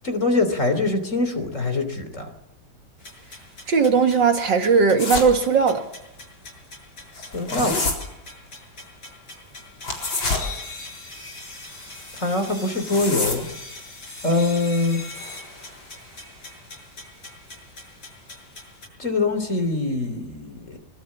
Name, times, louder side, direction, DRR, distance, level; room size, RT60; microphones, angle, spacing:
voice 1, 0.0-2.3 7.3-7.8 12.1-13.5 14.2-15.0 19.0-20.8, left 2 dB, 35° left, 3.5 m, -23 dB
sound 1, 3.0-18.9, left 2 dB, 55° left, 7.5 m, -42 dB
voice 2, 3.7-5.8, right 5 dB, 60° right, 2.4 m, -18 dB
sound 2, 5.0-5.3 7.2-7.9 9.8-10.5 12.7-13.5, left 3 dB, 70° left, 4.9 m, -25 dB
24.5 x 22.0 x 7.4 m
omnidirectional pair, 2.2 m